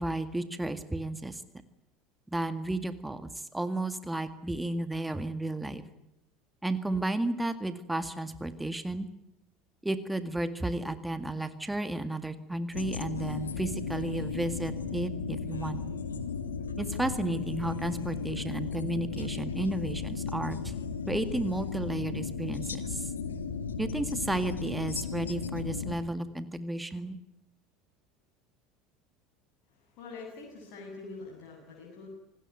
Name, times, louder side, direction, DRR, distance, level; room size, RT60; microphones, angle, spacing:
voice 1, 0.0-1.4 2.3-5.8 6.6-9.1 9.8-15.8 16.8-20.7 21.1-23.1 23.8-27.2, right 1 dB, 5° right, 11 dB, 2.0 m, -33 dB
sound 1, 12.7-25.9, left 5 dB, 75° left, 2.0 m, -35 dB
voice 2, 29.7-32.1, left 3 dB, 50° left, -1 dB, 8.0 m, -45 dB
27.5 x 19.5 x 9.1 m, 0.85 s
figure-of-eight pair, 70°, 0 cm